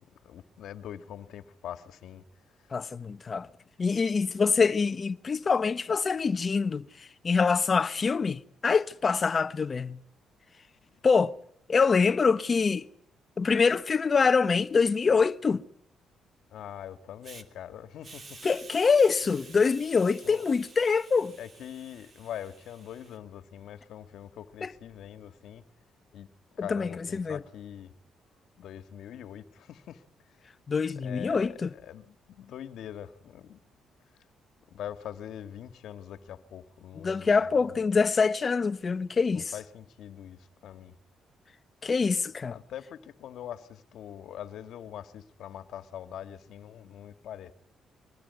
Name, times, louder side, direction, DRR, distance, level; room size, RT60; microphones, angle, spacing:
voice 1, 0.1-2.2 2.6-2.7 16.5-18.4 20.2-20.5 21.4-25.6 26.1-27.9 28.6-30.5 31.0-33.6 34.7-37.8 39.3-40.9 42.5-47.5, left 10 dB, 75° left, 1.8 m, -43 dB
voice 2, 2.7-3.5 3.8-10.0 11.0-11.3 11.7-12.8 13.4-15.6 18.4-21.3 24.6-24.7 26.6-27.4 30.7-31.7 37.0-39.5 41.8-42.5, left 5 dB, 35° left, 1.2 m, -25 dB
Hiss, 17.2-17.4 18.0-23.2, right 4 dB, 45° right, 3.2 m, -51 dB
24.5 x 20.5 x 9.6 m
cardioid pair, 90°, 0 cm